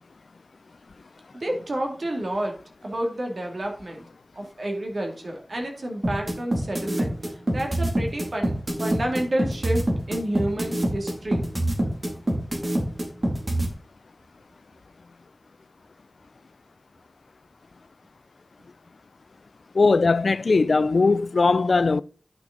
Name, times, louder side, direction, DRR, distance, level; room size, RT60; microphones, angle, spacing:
voice 1, 1.3-2.6 2.8-4.0 4.3-11.5, right 1 dB, 65° right, 2.2 m, -30 dB
sound 1, 6.0-13.7, right 1 dB, 40° right, 2.4 m, -24 dB
voice 2, 19.7-22.0, left 3 dB, 85° left, 0.3 m, -19 dB
10.0 x 6.0 x 3.8 m
wide cardioid pair, 65°, 0 cm